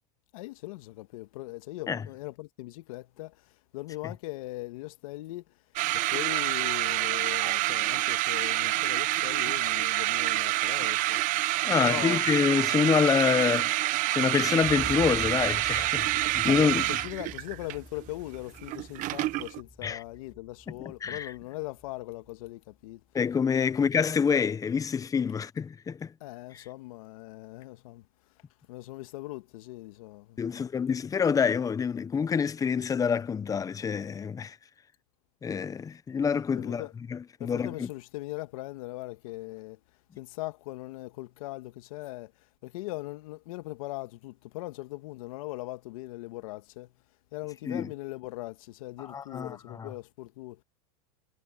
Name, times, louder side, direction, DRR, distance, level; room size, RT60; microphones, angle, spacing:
voice 1, 0.3-11.2 11.8-12.2 16.5-23.0 26.2-28.0 28.3-28.4 28.7-30.7 36.5-36.9 37.4-39.8 40.2-46.9 47.3-50.6, left 20 dB, 70° left, 1.7 m, -40 dB
sound 1, 5.8-19.6, right 18 dB, 45° right, 1.0 m, -27 dB
voice 2, 11.6-16.8 19.8-20.0 21.0-21.3 23.1-26.1 30.4-34.6 35.4-36.8 37.1-37.9 47.7-47.9 49.0-49.9, left 6 dB, 20° left, 0.9 m, -27 dB
sound 2, 14.6-22.5 22.9-23.0, equal, ahead, 3.1 m, -46 dB
supercardioid pair, 115°, 18 cm